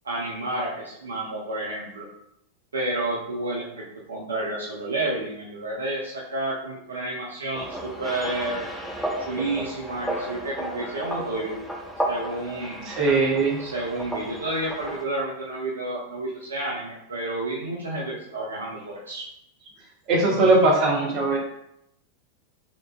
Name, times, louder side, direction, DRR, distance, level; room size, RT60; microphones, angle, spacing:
voice 1, 0.0-2.1 2.7-8.6 9.2-11.6 12.0-12.9 13.6-19.2, right 2 dB, 70° right, -2 dB, 0.5 m, -30 dB
sound 1, 7.5-15.0, right 1 dB, ahead, 0.6 m, -33 dB
voice 2, 12.8-13.6 20.1-21.4, right 2 dB, 40° right, -2 dB, 1.0 m, -20 dB
3.8 x 3.2 x 2.3 m, 0.81 s
figure-of-eight pair, 90°, 0 cm